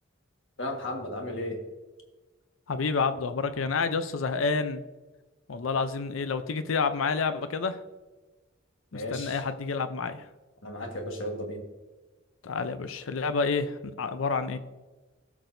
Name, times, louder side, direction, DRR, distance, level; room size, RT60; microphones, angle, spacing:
voice 1, 0.6-1.6 8.9-9.4 10.6-11.6, left 1 dB, 70° left, 2 dB, 1.6 m, -34 dB
voice 2, 2.7-4.8 5.5-7.8 8.9-10.2 12.4-14.6, left 4 dB, 90° left, 11 dB, 0.6 m, -29 dB
15.5 x 6.1 x 2.6 m, 1.2 s
head